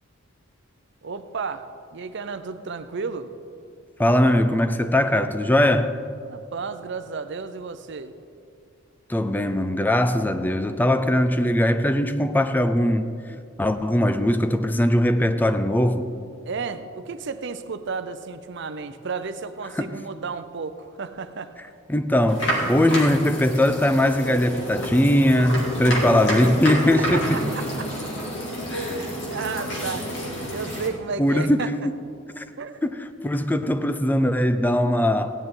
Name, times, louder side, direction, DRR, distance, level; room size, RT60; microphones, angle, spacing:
voice 1, 1.0-1.6 1.9-3.3 6.3-8.1 16.5-21.7 27.0-27.2 27.6-27.9 28.9-30.1 30.5-31.7 32.6-32.8, right 5 dB, 60° right, 0.6 m, -33 dB
voice 2, 4.0-5.9 9.1-13.1 13.6-16.0 19.8-19.9 21.9-27.4 31.2-31.7 32.4-32.5 32.8-35.3, left 1 dB, 10° left, 0.4 m, -20 dB
sound 1, 22.3-30.9, equal, 60° left, 2.5 m, -29 dB
16.5 x 10.0 x 3.8 m
head